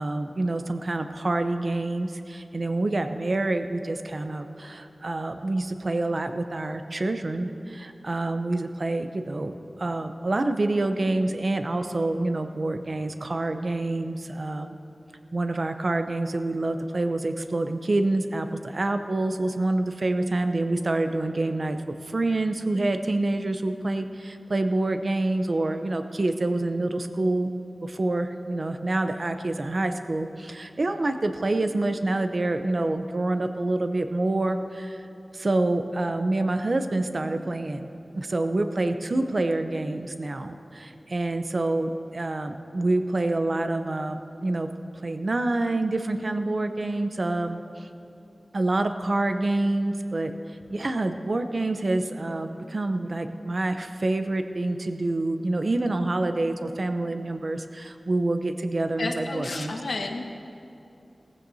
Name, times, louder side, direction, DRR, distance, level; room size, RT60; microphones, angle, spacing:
voice 1, 0.0-14.7 15.3-27.5 27.8-35.1 35.3-37.9 38.2-44.7 45.0-47.9 48.5-50.3 50.7-59.7, right 2 dB, 55° right, 7 dB, 0.7 m, -27 dB
voice 2, 59.0-60.5, left 2 dB, 80° left, 3 dB, 1.1 m, -32 dB
19.0 x 15.0 x 2.8 m, 2.7 s
wide cardioid pair, 60°, 0 cm